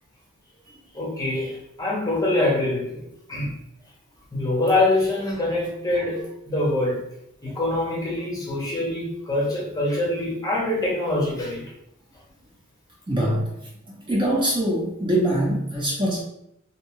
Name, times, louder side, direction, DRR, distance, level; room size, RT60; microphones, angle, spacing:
voice 1, 0.9-3.0 3.3-3.5 4.3-7.0 7.4-11.6, left 2 dB, 20° left, -4 dB, 0.7 m, -24 dB
voice 2, 13.1-13.4 14.0-16.2, right 1 dB, 25° right, -4 dB, 0.6 m, -23 dB
2.6 x 2.2 x 2.9 m, 0.77 s
head